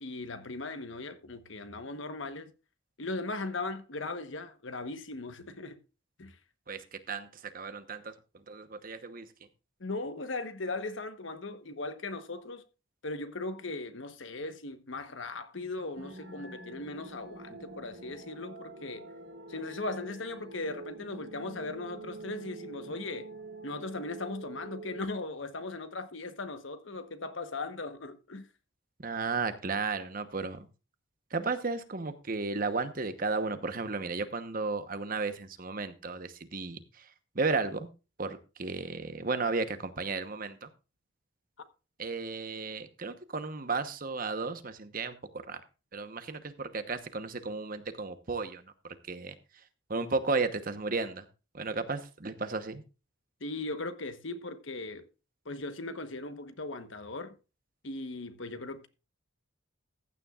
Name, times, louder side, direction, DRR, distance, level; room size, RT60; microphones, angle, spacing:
voice 1, 0.0-2.5 3.0-5.8 6.2-6.4 9.8-12.6 13.0-19.0 19.5-23.3 23.6-28.5 53.4-55.1 55.4-57.3 57.8-58.9, left 2 dB, 65° left, 1.2 m, -38 dB
voice 2, 6.7-8.1 8.5-9.3 29.0-30.6 31.3-37.0 37.3-37.9 38.2-40.7 42.0-45.2 45.5-45.6 45.9-49.3 49.9-51.2 51.5-52.8, right 4 dB, 45° right, 1.1 m, -34 dB
sound 1, 15.9-25.0, right 2 dB, 75° right, 2.7 m, -46 dB
15.0 x 9.9 x 2.4 m
head